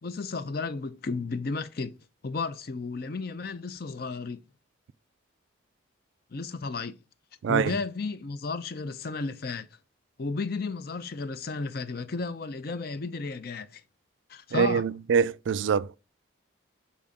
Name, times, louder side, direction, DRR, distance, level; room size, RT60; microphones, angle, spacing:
voice 1, 0.0-2.0 2.2-4.4 6.3-7.0 7.5-9.7 10.2-13.8 14.3-14.8, left 4 dB, 45° left, 0.5 m, -33 dB
voice 2, 7.4-7.7 14.5-16.0, right 6 dB, 65° right, 0.3 m, -24 dB
7.1 x 4.3 x 3.6 m
head